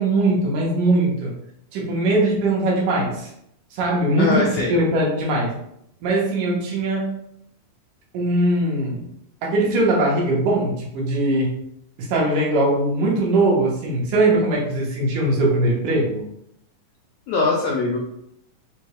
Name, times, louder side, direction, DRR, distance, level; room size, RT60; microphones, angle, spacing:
voice 1, 0.0-1.4 1.7-3.3 3.7-5.5 6.0-7.1 8.1-9.1 9.4-11.6 12.0-16.2, right 2 dB, 75° right, -3 dB, 2.6 m, -20 dB
voice 2, 4.2-4.7 17.3-18.0, left 3 dB, 80° left, -3 dB, 1.6 m, -21 dB
5.9 x 2.3 x 3.0 m, 0.74 s
omnidirectional pair, 3.7 m